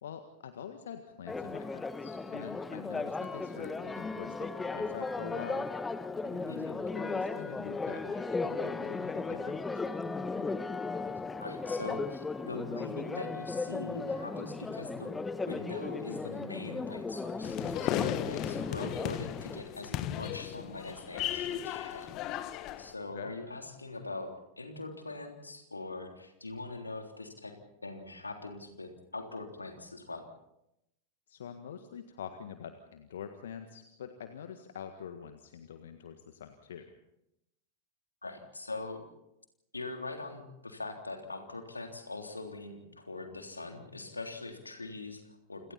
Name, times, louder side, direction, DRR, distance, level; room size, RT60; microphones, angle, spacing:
voice 1, 0.0-5.7 6.2-10.1 23.1-23.3 31.3-36.9, left 8 dB, 60° left, 7 dB, 1.7 m, -45 dB
Church bell, 1.3-19.6, left 3 dB, 10° left, 1.2 m, -36 dB
voice 2, 6.5-6.8 11.4-15.2 15.5-22.2 22.8-24.3 24.6-27.5 27.8-30.3 38.2-39.0 39.7-45.7, left 2 dB, 80° left, 4 dB, 3.5 m, -42 dB
sound 1, 17.4-22.9, left 12 dB, 40° left, 1.4 m, -36 dB
29.0 x 28.0 x 4.3 m, 0.85 s
figure-of-eight pair, 90°, 0 cm